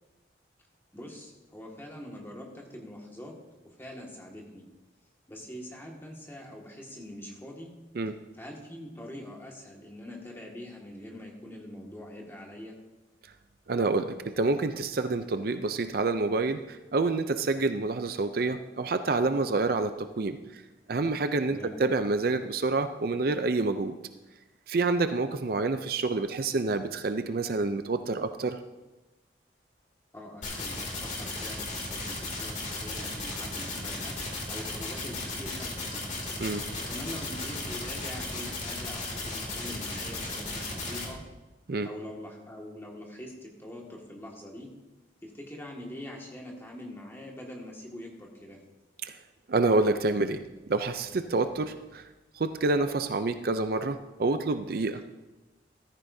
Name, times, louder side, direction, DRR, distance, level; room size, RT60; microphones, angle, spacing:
voice 1, 0.9-3.3 3.6-4.6 5.3-7.7 8.3-12.8 21.5-21.7 30.1-34.2 34.5-36.0 36.8-41.2 41.8-44.7 45.2-48.6, left 1 dB, 15° left, -1 dB, 1.9 m, -43 dB
voice 2, 13.7-20.6 20.9-23.9 24.7-28.6 36.4-36.6 41.7-41.9 49.0-49.2 49.5-52.0 52.3-55.1, right 3 dB, 55° right, 9 dB, 0.5 m, -28 dB
sound 1, 30.4-41.1, left 2 dB, 40° left, 2.6 m, -35 dB
14.5 x 13.5 x 2.7 m, 1.1 s
head